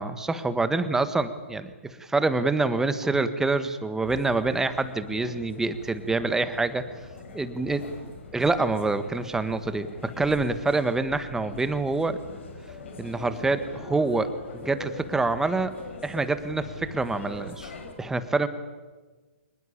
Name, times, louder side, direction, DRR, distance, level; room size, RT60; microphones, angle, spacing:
voice 1, 0.0-6.8 7.3-7.9 8.3-12.2 13.0-15.7 16.0-17.7 18.0-18.5, right 3 dB, 5° right, 11 dB, 1.6 m, -26 dB
sound 1, 4.0-17.9, left 3 dB, 65° left, 6.2 m, -42 dB
25.5 x 21.0 x 8.7 m, 1.3 s
figure-of-eight pair, 125°, 7 cm